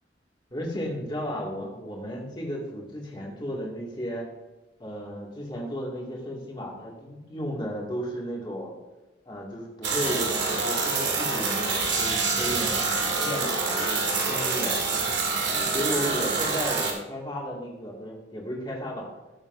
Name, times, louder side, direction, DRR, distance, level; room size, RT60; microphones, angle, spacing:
voice 1, 0.5-4.3 4.8-8.7 9.3-12.7 13.2-14.9 15.5-19.1, equal, 25° left, -2 dB, 2.1 m, -34 dB
sound 1, 9.8-16.9, right 4 dB, 80° right, 2.2 m, -26 dB
18.0 x 7.1 x 2.6 m, 1.1 s
head